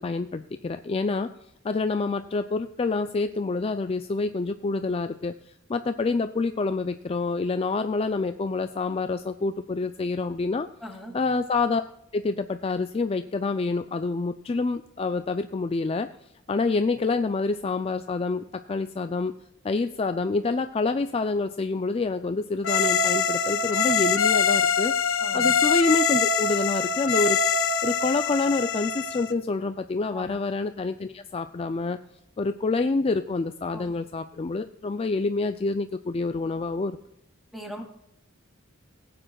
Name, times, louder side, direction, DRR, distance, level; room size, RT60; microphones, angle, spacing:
voice 1, 0.0-1.3 1.6-5.3 5.7-10.7 11.1-11.8 12.1-16.1 16.5-19.3 19.6-27.4 27.8-32.0 32.4-37.0, left 3 dB, 30° left, 9 dB, 0.3 m, -27 dB
voice 2, 10.8-11.1 25.2-25.5 30.1-30.3 33.7-33.9 37.5-37.8, equal, ahead, 0 dB, 2.2 m, -39 dB
sound 1, 22.6-29.3, left 5 dB, 80° left, 1.0 m, -24 dB
18.0 x 9.1 x 2.3 m, 0.79 s
head